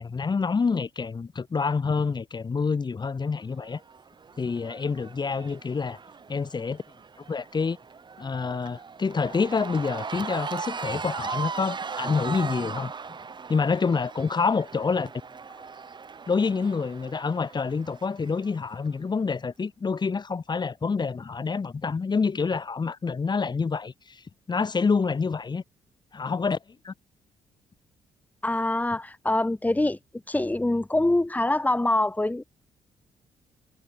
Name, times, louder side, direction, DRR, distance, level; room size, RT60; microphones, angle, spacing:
voice 1, 0.0-3.8 4.4-6.0 6.3-6.8 7.3-7.8 8.2-12.9 13.5-15.1 16.3-25.6 26.1-26.6 26.8-26.9, left 5 dB, 40° left, 6.2 m, -27 dB
Cheering / Crowd, 3.6-18.9, right 5 dB, 40° right, 3.0 m, -39 dB
voice 2, 28.4-30.0 30.3-32.4, left 2 dB, 15° left, 3.8 m, -24 dB
cardioid pair, 75°, 12 cm